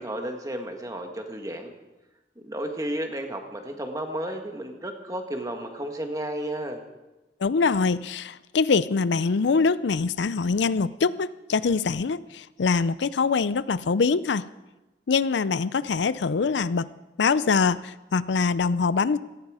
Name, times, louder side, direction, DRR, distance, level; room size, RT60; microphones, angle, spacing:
voice 1, 0.0-1.7 2.3-6.8, right 1 dB, 20° right, 4 dB, 1.7 m, -33 dB
voice 2, 7.4-14.5 15.1-16.9 17.2-19.2, left 4 dB, 85° left, 17 dB, 0.5 m, -24 dB
17.0 x 15.5 x 4.9 m, 1.1 s
head